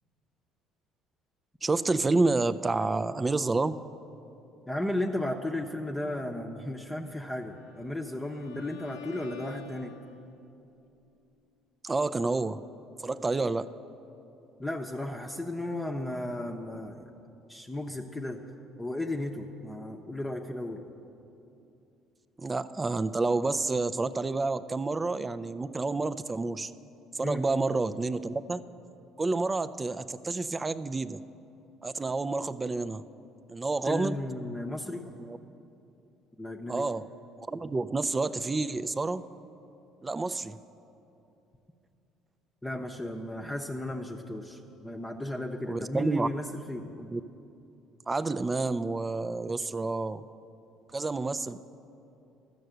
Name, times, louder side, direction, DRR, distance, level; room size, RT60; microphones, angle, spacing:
voice 1, 1.6-3.8 11.8-12.6 13.0-13.7 22.4-26.7 27.1-28.6 29.2-31.2 31.8-33.0 33.5-34.2 35.2-35.4 36.7-37.0 37.4-39.2 40.0-40.6 45.7-46.3 47.0-47.2 48.1-50.2 50.9-51.6, right 3 dB, 25° right, 13 dB, 0.4 m, -29 dB
voice 2, 4.7-9.9 14.6-17.1 17.5-18.4 18.8-20.8 27.2-27.4 33.9-35.0 36.4-36.9 42.6-46.9, left 1 dB, 15° left, 1 dB, 0.8 m, -34 dB
Bowed string instrument, 7.4-10.5, left 4 dB, 85° left, 0.8 m, -48 dB
12.5 x 6.6 x 7.9 m, 2.8 s
hypercardioid pair, 65°, 0 cm